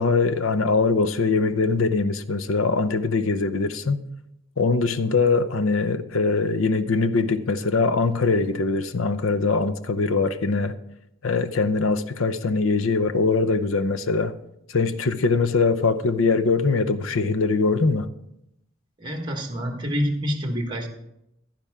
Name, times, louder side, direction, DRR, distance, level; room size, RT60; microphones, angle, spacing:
voice 1, 0.0-4.0 4.6-10.8 11.2-14.3 14.7-18.1, left 4 dB, 80° left, 0.7 m, -22 dB
voice 2, 19.0-20.9, equal, 25° right, 1.5 m, -27 dB
10.5 x 10.0 x 3.6 m
head